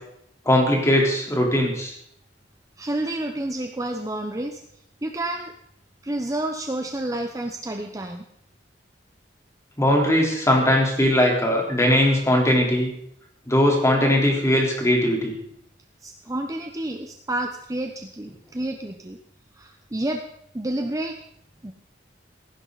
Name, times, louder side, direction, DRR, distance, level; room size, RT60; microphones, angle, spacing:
voice 1, 0.5-1.9 9.8-12.9 13.5-15.3, left 1 dB, 15° left, -1 dB, 3.9 m, -20 dB
voice 2, 2.8-4.6 5.0-5.5 6.0-8.2 16.0-19.2 19.6-20.2 20.5-21.2 21.6-21.7, right 1 dB, 20° right, 5 dB, 0.9 m, -29 dB
16.5 x 16.0 x 4.1 m, 0.72 s
head